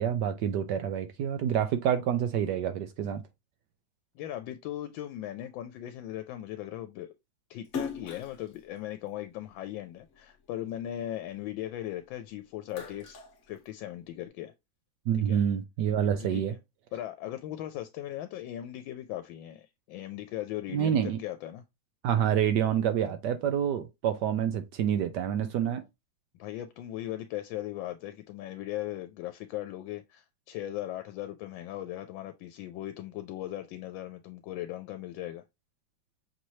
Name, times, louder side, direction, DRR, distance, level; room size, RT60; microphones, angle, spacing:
voice 1, 0.0-3.2 15.1-16.5 20.7-21.2 22.0-25.8, right 9 dB, 75° right, 1.1 m, -27 dB
voice 2, 4.2-7.1 7.5-13.2 13.5-14.5 15.1-15.4 16.2-16.6 16.9-21.6 26.3-35.4, left 13 dB, 80° left, 1.3 m, -38 dB
Splash splatter, 7.6-10.2 10.7-12.1 12.5-14.2, left 6 dB, 50° left, 1.0 m, -41 dB
6.0 x 3.1 x 2.7 m
omnidirectional pair, 2.1 m